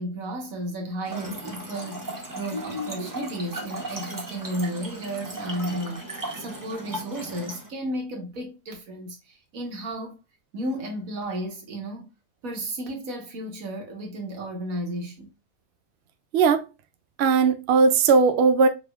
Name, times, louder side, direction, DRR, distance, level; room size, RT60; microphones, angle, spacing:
voice 1, 0.0-10.1 10.5-12.1 12.4-15.3, right 1 dB, 85° right, 1.7 m, -33 dB
Trickle dribble / Fill (with liquid), 1.0-7.7, right 1 dB, 15° right, 0.8 m, -36 dB
voice 2, 16.3-16.7 17.2-18.7, right 5 dB, 60° right, 0.7 m, -18 dB
5.2 x 3.2 x 2.3 m
omnidirectional pair, 1.4 m